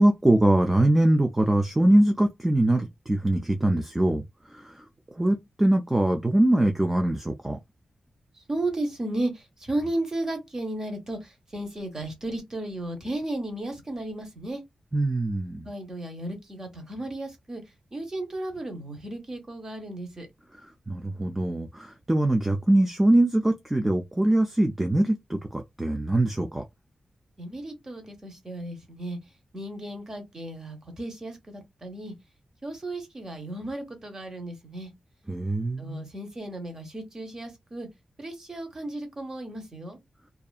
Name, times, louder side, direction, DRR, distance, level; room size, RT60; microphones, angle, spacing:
voice 1, 0.0-4.2 4.5-4.8 5.2-7.6 14.9-15.7 20.9-26.6 35.3-36.1, right 1 dB, 10° right, 0.3 m, -23 dB
voice 2, 8.3-14.6 15.7-17.6 17.9-20.3 27.4-29.2 29.5-32.1 32.6-34.9 35.8-37.9 38.2-40.0, right 1 dB, 25° right, 0.8 m, -34 dB
2.6 x 2.3 x 2.3 m
wide cardioid pair, 160°, 2 cm